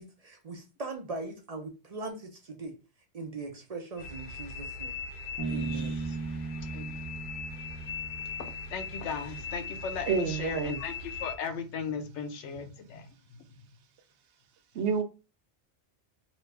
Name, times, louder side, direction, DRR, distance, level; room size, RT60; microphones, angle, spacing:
voice 1, 0.0-2.7 3.1-4.9 5.5-5.9, right 3 dB, 45° right, 0.5 m, -40 dB
sound 1, 4.0-11.4, left 4 dB, 55° left, 0.8 m, -40 dB
Bass guitar, 5.4-8.9, right 3 dB, 25° right, 0.8 m, -37 dB
voice 2, 8.4-10.9 11.2-13.4, left 6 dB, 85° left, 1.0 m, -37 dB
voice 3, 10.1-10.8 14.7-15.0, right 6 dB, 80° right, 0.9 m, -28 dB
3.0 x 2.5 x 3.3 m
omnidirectional pair, 1.2 m